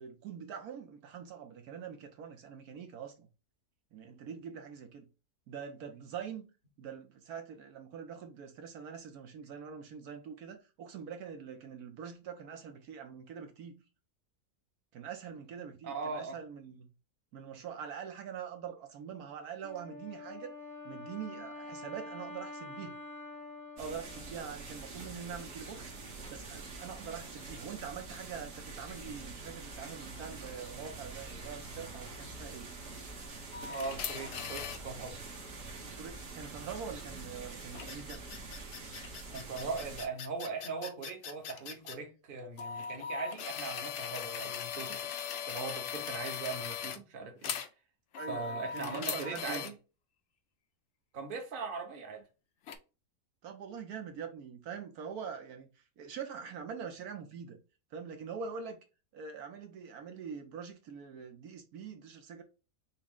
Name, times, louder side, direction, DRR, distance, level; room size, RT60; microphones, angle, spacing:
voice 1, 0.0-3.3 3.9-5.1 5.5-6.4 6.8-13.8 14.9-16.9 17.3-20.5 20.8-23.0 23.8-25.9 26.3-32.7 35.8-38.2 48.2-49.7 53.4-57.6 57.9-58.8 59.1-62.4, right 7 dB, 75° right, 1.2 m, -44 dB
voice 2, 15.8-16.4 33.7-35.2 39.3-45.0 45.4-47.6 48.3-49.7 51.1-52.3, right 4 dB, 40° right, 1.0 m, -40 dB
Wind instrument woodwind instrument, 19.6-25.0, left 2 dB, ahead, 0.6 m, -46 dB
sound 1, 23.8-40.1, right 3 dB, 55° right, 1.5 m, -45 dB
sound 2, 33.5-34.8 37.7-42.0 42.6-47.0 47.4-47.7 48.1-49.7 52.7-52.8, left 7 dB, 60° left, 0.8 m, -39 dB
6.0 x 2.1 x 3.6 m
omnidirectional pair, 1.7 m